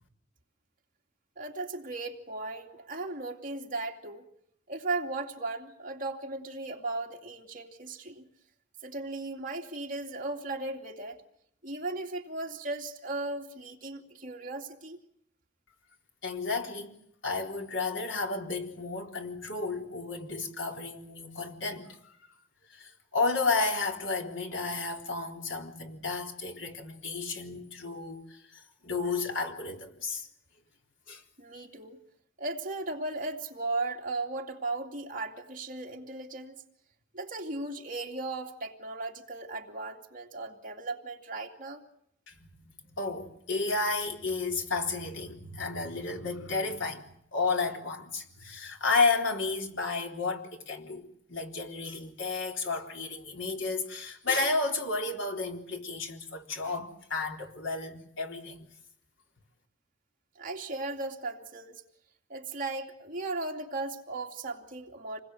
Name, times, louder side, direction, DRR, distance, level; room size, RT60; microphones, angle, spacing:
voice 1, 1.4-4.2 4.7-8.2 8.8-11.2 11.6-15.0 31.4-32.0 32.4-36.6 37.1-41.8 60.4-61.8 62.3-65.2, right 2 dB, 45° right, 2.7 m, -36 dB
voice 2, 16.2-17.0 17.2-22.1 22.7-30.3 31.1-31.2 42.3-47.0 47.3-58.7, left 3 dB, 85° left, 3.7 m, -32 dB
27.5 x 20.5 x 7.9 m
head